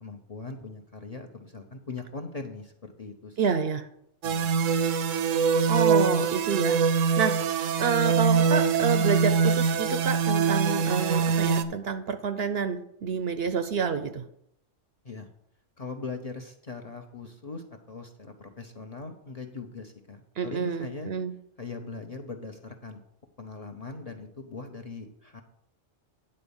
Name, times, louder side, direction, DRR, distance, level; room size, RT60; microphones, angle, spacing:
voice 1, 0.0-3.4 4.2-4.5 15.0-15.3 15.8-21.1 21.6-23.0 23.4-25.4, left 4 dB, 35° left, 3 dB, 0.7 m, -40 dB
voice 2, 3.4-3.9 5.7-6.8 7.2-14.2 20.4-21.3, right 6 dB, 60° right, 9 dB, 0.7 m, -29 dB
sound 1, 4.2-11.6, right 5 dB, 85° right, 1.0 m, -23 dB
9.8 x 4.1 x 7.0 m, 0.74 s
omnidirectional pair, 1.3 m